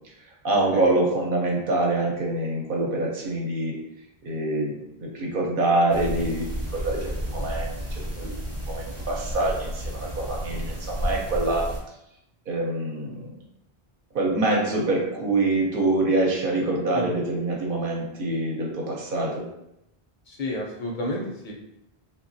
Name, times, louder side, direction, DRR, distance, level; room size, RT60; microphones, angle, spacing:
voice 1, 0.4-3.7 4.2-4.7 5.0-6.5 6.7-8.3 8.7-11.7 12.5-13.3 14.1-19.4, right 2 dB, 65° right, -2 dB, 0.8 m, -25 dB
sound 1, 5.9-11.8, equal, 20° right, 0.5 m, -32 dB
voice 2, 20.3-21.6, left 1 dB, 60° left, -1 dB, 0.6 m, -31 dB
2.9 x 2.1 x 2.6 m, 0.84 s
omnidirectional pair, 1.0 m